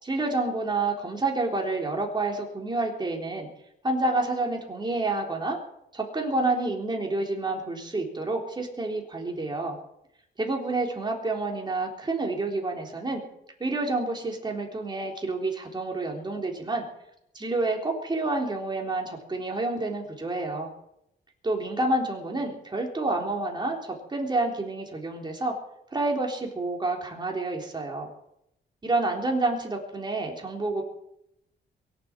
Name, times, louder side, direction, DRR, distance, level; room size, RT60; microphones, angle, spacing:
voice 1, 0.0-3.5 3.8-5.6 5.9-9.8 10.4-13.2 13.6-16.9 17.3-20.7 21.4-25.5 25.9-28.1 28.8-30.8, right 2 dB, 25° right, 0 dB, 3.6 m, -29 dB
23.0 x 7.8 x 7.5 m, 0.80 s
cardioid pair, 120°, 19 cm